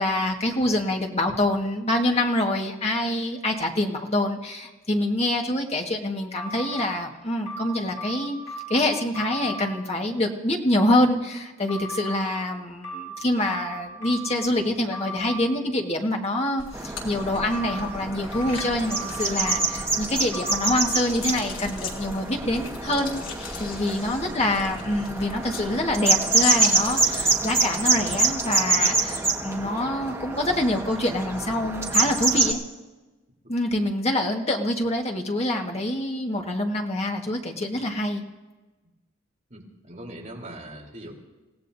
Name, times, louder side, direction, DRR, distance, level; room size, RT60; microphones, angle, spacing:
voice 1, 0.0-8.4 8.7-23.3 23.6-32.6 33.5-38.2, left 1 dB, 30° left, 2 dB, 1.6 m, -26 dB
sound 1, 6.4-6.8 7.5-8.8 9.1-9.6 11.7-12.2 12.8-14.5 14.9-15.4 17.3-17.8 18.3-19.9 20.3-20.8, right 1 dB, 60° left, 5.6 m, -36 dB
sound 2, 16.6-28.8, left 5 dB, 80° left, 3.0 m, -39 dB
sound 3, 16.7-32.5, right 3 dB, 15° right, 1.6 m, -26 dB
voice 2, 24.2-24.6 39.5-41.1, right 1 dB, 40° right, -1 dB, 3.4 m, -42 dB
30.0 x 16.5 x 2.7 m, 1.2 s
head